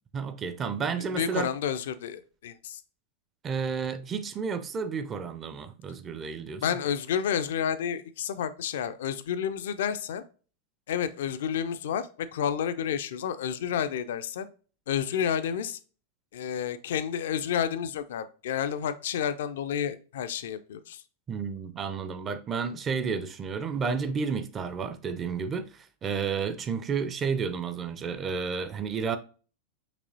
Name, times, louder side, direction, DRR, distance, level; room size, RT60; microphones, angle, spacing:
voice 1, 0.1-1.5 3.4-6.6 21.3-29.2, right 5 dB, 25° right, 0.5 m, -31 dB
voice 2, 1.1-2.8 6.6-10.2 10.9-14.5 14.9-15.8 16.3-21.0, left 8 dB, 60° left, 0.4 m, -30 dB
6.0 x 2.9 x 2.6 m
figure-of-eight pair, 90°, 0 cm